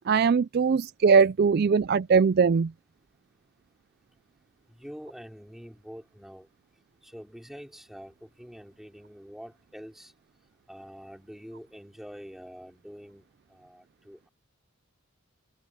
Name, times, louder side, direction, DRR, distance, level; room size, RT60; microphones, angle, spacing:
voice 1, 0.1-2.7, right 5 dB, 45° right, 0.3 m, -21 dB
voice 2, 4.7-6.5 7.0-10.1 10.7-13.2 13.5-14.3, equal, ahead, 3.6 m, -46 dB
head